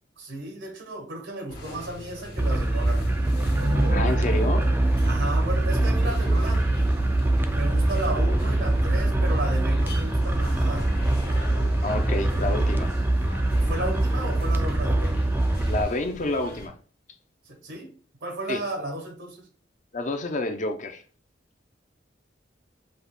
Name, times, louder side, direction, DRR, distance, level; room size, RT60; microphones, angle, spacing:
voice 1, 0.2-3.0 5.0-6.7 7.5-10.9 13.7-15.2 17.5-17.9 18.2-19.5, right 1 dB, 75° right, 1.0 m, -34 dB
sound 1, 1.5-16.7, left 1 dB, 60° left, 1.5 m, -41 dB
sound 2, 2.4-15.8, right 1 dB, 10° right, 0.3 m, -23 dB
sound 3, 3.3-7.1, right 1 dB, 55° right, 0.7 m, -33 dB
voice 2, 3.9-4.7 11.8-12.9 15.7-16.7 18.5-18.6 19.9-21.0, left 2 dB, 40° left, 0.6 m, -28 dB
5.4 x 2.4 x 3.4 m
head